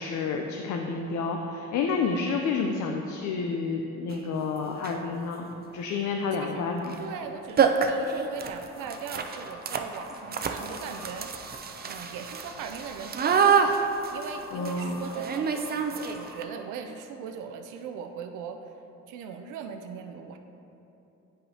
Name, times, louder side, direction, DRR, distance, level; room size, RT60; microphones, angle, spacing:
voice 1, 0.0-5.5 5.7-6.9 14.5-15.0, left 4 dB, 75° left, 2 dB, 0.5 m, -29 dB
sound 1, 4.1-4.2 4.7-5.1 6.8-7.0 7.2-7.3 7.6-16.4, right 6 dB, 30° right, 0.5 m, -28 dB
voice 2, 6.3-6.6 7.0-11.3 11.8-18.6 19.1-20.4, right 6 dB, 85° right, 6 dB, 0.5 m, -39 dB
sound 2, 8.7-16.7, left 1 dB, ahead, 0.9 m, -48 dB
8.9 x 5.4 x 2.8 m, 2.9 s
cardioid pair, 90°, 30 cm